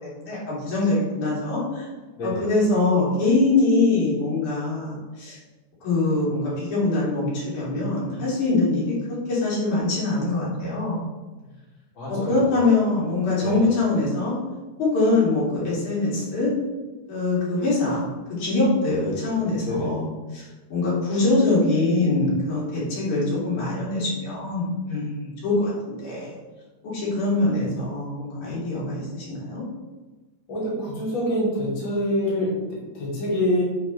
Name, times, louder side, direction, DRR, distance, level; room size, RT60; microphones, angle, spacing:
voice 1, 0.0-1.9 2.2-5.4 5.8-8.9 9.3-11.0 12.1-14.3 14.8-16.5 17.1-18.0 18.4-20.1 20.3-26.4 26.8-29.6, left 2 dB, 80° left, -8 dB, 4.4 m, -23 dB
voice 2, 12.0-12.5 13.4-13.6 19.6-19.9 30.5-33.6, left 1 dB, 40° left, -8 dB, 3.2 m, -26 dB
9.9 x 5.7 x 3.5 m, 1.2 s
omnidirectional pair, 3.4 m